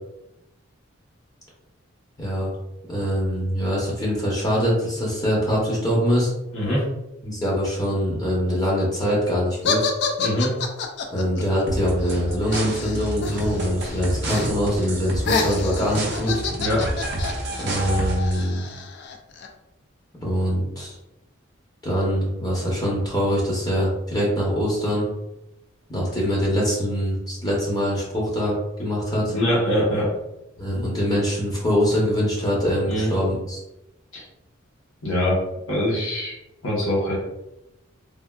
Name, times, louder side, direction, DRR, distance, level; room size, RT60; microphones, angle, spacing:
voice 1, 2.2-2.5 2.9-6.3 7.2-9.9 11.1-16.4 17.6-18.6 20.2-20.9 21.8-25.1 25.9-29.3 30.6-33.6, equal, 20° left, -5 dB, 0.7 m, -23 dB
sound 1, 9.6-13.7 13.9-14.5 14.8-19.5, left 4 dB, 55° left, 0.3 m, -28 dB
voice 2, 10.2-10.5 16.6-16.8 29.3-30.1 32.9-33.1 34.1-34.2 35.0-35.4 35.7-36.3 36.6-37.2, equal, 90° left, -7 dB, 0.9 m, -23 dB
sound 2, 11.7-18.4, right 1 dB, 55° right, 0.5 m, -29 dB
3.3 x 2.4 x 2.2 m, 0.91 s
head